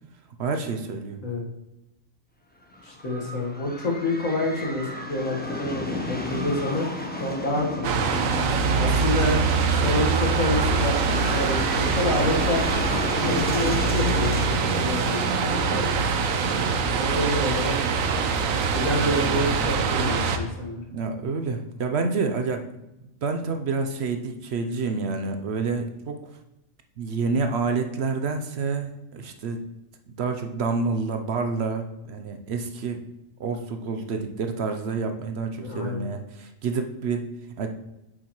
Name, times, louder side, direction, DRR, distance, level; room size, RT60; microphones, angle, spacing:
voice 1, 0.4-1.2 8.4-8.5 20.9-22.6 23.2-26.2 27.0-29.6 30.2-33.0 33.4-37.3 37.6-37.7, right 4 dB, 60° right, 6 dB, 0.9 m, -28 dB
sound 1, 2.6-20.3, left 1 dB, 10° left, 0.8 m, -35 dB
voice 2, 2.8-8.0 8.8-9.4 9.7-12.6 13.2-15.9 17.0-17.9 18.7-20.8 35.6-36.0, left 2 dB, 80° left, -1 dB, 2.0 m, -28 dB
sound 2, 7.8-20.4, right 5 dB, 85° right, 1.1 m, -24 dB
8.5 x 6.5 x 3.0 m, 0.92 s
omnidirectional pair, 1.4 m